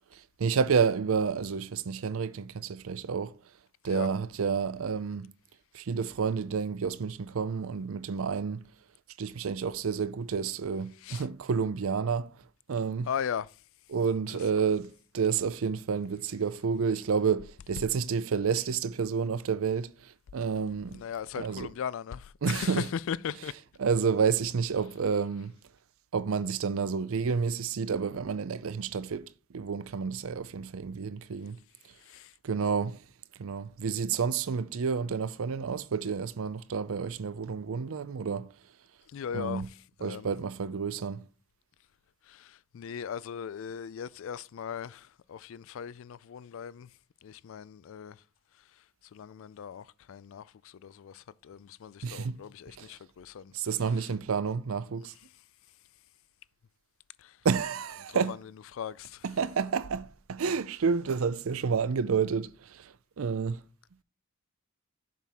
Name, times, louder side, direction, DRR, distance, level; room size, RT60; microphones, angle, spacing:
voice 1, 0.1-3.3 3.8-5.3 5.7-8.6 9.2-12.3 12.7-13.1 13.9-21.0 21.4-21.7 22.4-22.8 23.8-25.5 26.1-29.3 29.5-31.6 32.4-33.0 33.4-38.5 39.3-39.6 40.0-41.2 52.0-52.4 52.8-52.9 53.5-55.1 57.4-58.3 59.4-63.6, right 6 dB, 70° right, 0.5 m, -30 dB
voice 2, 13.0-13.6 14.3-14.6 20.9-23.5 31.9-32.4 39.1-40.3 42.2-48.2 48.5-53.5 53.8-54.1 55.0-55.4 57.2-57.5 58.1-59.3, left 8 dB, 65° left, 0.3 m, -39 dB
7.3 x 5.9 x 3.6 m
head